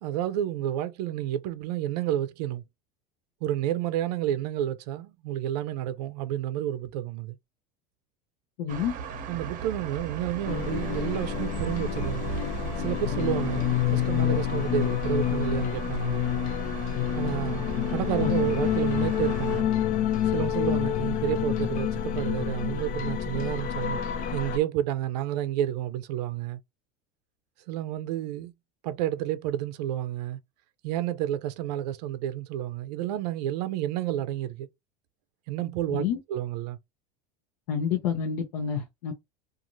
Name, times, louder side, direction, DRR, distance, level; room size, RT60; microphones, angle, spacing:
voice 1, 0.0-2.6 3.4-7.4 9.3-12.3 12.8-16.2 17.1-19.7 20.3-24.0 24.3-26.6 27.7-28.5 28.8-30.4 30.8-34.7 35.5-36.8, right 12 dB, 80° right, 0.4 m, -30 dB
voice 2, 8.6-8.9 18.0-18.3 35.9-36.2 37.7-39.1, left 8 dB, 75° left, 0.8 m, -29 dB
sound 1, 8.7-19.6, right 6 dB, 40° right, 0.8 m, -38 dB
sound 2, 10.5-24.6, left 10 dB, 40° left, 0.4 m, -28 dB
2.5 x 2.4 x 3.0 m
supercardioid pair, 135°, 21 cm